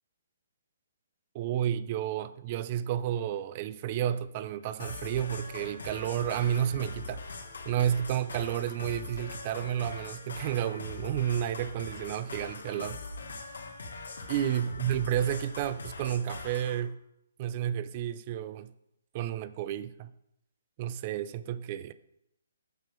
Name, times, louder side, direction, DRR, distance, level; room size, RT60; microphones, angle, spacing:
voice 1, 1.3-7.3 7.7-13.0 14.3-17.0 17.4-18.7 19.1-20.1 20.8-21.9, right 10 dB, 25° right, 0.4 m, -31 dB
sound 1, 4.8-16.8, left 3 dB, 85° left, 2.1 m, -42 dB
9.0 x 5.5 x 5.8 m
hypercardioid pair, 170°, 0 cm